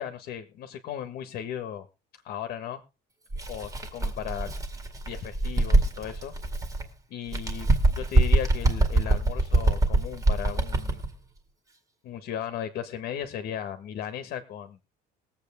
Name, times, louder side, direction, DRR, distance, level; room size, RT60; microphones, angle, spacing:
voice 1, 0.0-1.9 2.2-2.8 3.5-4.5 5.1-6.3 7.1-11.0 12.0-14.8, left 9 dB, 55° left, 9 dB, 1.5 m, -36 dB
Bird, 3.3-6.9 7.3-11.1, right 2 dB, 15° right, 2.1 m, -24 dB
20.5 x 8.1 x 3.6 m, 0.29 s
cardioid pair, 165°, 19 cm